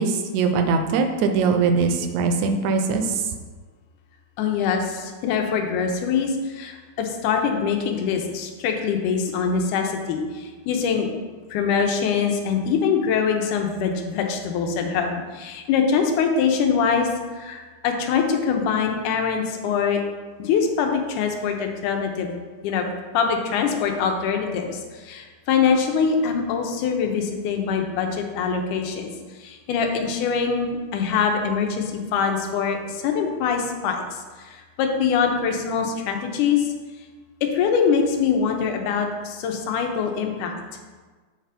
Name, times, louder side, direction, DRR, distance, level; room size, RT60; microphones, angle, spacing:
voice 1, 0.0-3.0, right 4 dB, 80° right, 6 dB, 1.8 m, -21 dB
voice 2, 4.4-11.1 11.5-20.0 20.4-22.3 22.6-22.9 23.1-29.1 29.4-34.2 34.4-36.6 37.4-40.5, left 6 dB, 85° left, 3 dB, 2.2 m, -23 dB
7.3 x 3.3 x 5.0 m, 1.4 s
omnidirectional pair, 3.5 m